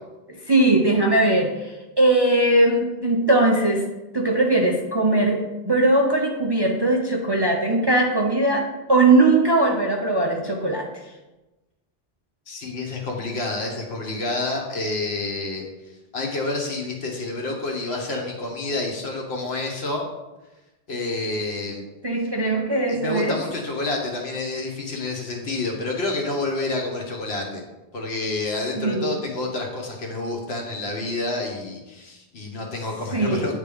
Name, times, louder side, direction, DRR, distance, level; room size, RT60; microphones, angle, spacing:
voice 1, 0.3-3.8 4.1-10.8 22.0-23.4 28.8-29.1 33.1-33.5, right 2 dB, 35° right, 0 dB, 0.4 m, -20 dB
voice 2, 12.5-15.6 16.1-20.0 20.9-21.8 22.9-27.6 27.9-33.6, left 2 dB, 75° left, 1 dB, 1.3 m, -28 dB
9.0 x 3.3 x 3.5 m, 1.1 s
omnidirectional pair, 1.1 m